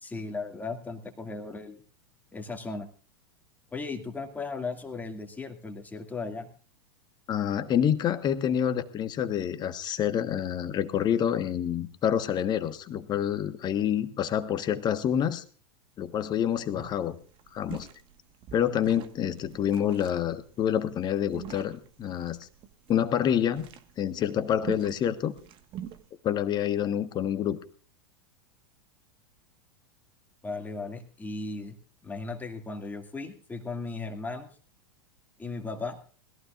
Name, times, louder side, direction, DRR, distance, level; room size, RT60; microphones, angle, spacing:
voice 1, 0.0-1.8 2.3-2.9 3.7-6.5 30.4-31.8 32.0-34.5 35.4-36.0, left 3 dB, 15° left, 4 dB, 2.2 m, -36 dB
voice 2, 7.3-15.4 16.0-17.1 17.5-17.9 18.5-22.4 22.9-23.7 24.0-25.3 26.2-27.6, left 9 dB, 35° left, 11 dB, 1.3 m, -27 dB
sound 1, 16.4-16.5 16.8-26.1, right 10 dB, 40° right, 1.5 m, -45 dB
21.0 x 15.0 x 2.5 m, 0.42 s
hypercardioid pair, 90°, 13 cm